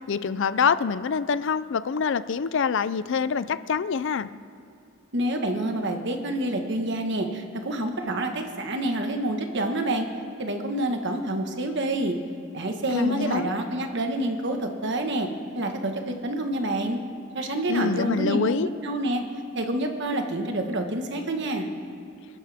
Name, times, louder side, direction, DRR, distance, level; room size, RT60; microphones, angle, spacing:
voice 1, 0.1-4.3 12.9-13.5 17.7-18.7, left 6 dB, 60° left, 15 dB, 0.4 m, -25 dB
voice 2, 5.1-10.1 10.4-12.1 12.5-15.3 15.5-17.0 17.3-18.6 18.8-19.2 19.5-21.7, right 1 dB, 55° right, 4 dB, 1.5 m, -27 dB
27.0 x 12.5 x 3.5 m, 2.5 s
head